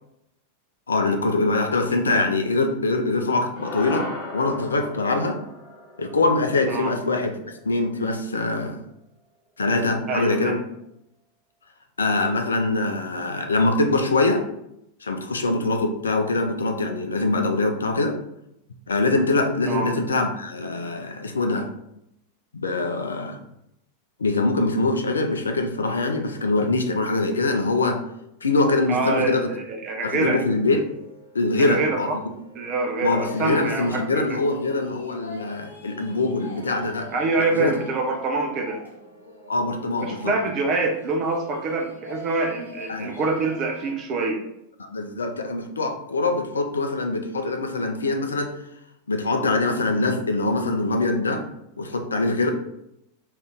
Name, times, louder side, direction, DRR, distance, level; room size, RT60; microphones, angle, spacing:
voice 1, 0.9-4.1 4.3-5.4 6.0-7.3 7.6-8.8 9.6-10.6 12.0-14.4 15.0-18.2 18.9-21.7 22.5-23.4 24.2-28.0 28.4-29.5 30.0-30.8 31.3-32.1 33.0-37.1 37.5-37.7 39.5-40.3 42.9-43.1 44.8-48.5 49.1-51.4 51.8-52.5, left 2 dB, 75° left, 5 dB, 0.4 m, -23 dB
sound 1, 3.6-8.0, left 2 dB, 40° left, 0.7 m, -37 dB
voice 2, 10.1-10.6 19.6-19.9 28.9-30.4 31.6-32.2 32.5-34.4 37.1-38.8 40.0-44.4, right 3 dB, 35° right, 3 dB, 0.4 m, -25 dB
sound 2, 30.3-43.9, left 1 dB, 85° right, 1.0 m, -44 dB
2.5 x 2.5 x 3.4 m, 0.81 s
figure-of-eight pair, 90°, 0 cm